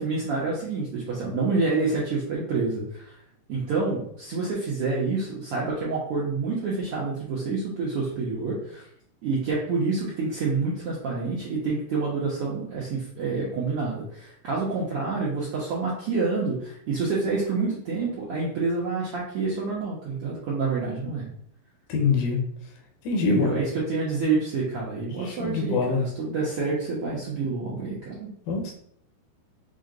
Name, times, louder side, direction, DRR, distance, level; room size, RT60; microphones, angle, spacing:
voice 1, 0.0-3.2 3.5-8.8 9.2-21.3 23.3-28.3, right 4 dB, 75° right, -6 dB, 1.3 m, -28 dB
voice 2, 21.9-22.4 23.0-23.6 25.2-26.0 28.5-28.7, left 4 dB, 90° left, 1 dB, 2.7 m, -24 dB
6.2 x 2.2 x 3.7 m, 0.68 s
omnidirectional pair, 3.8 m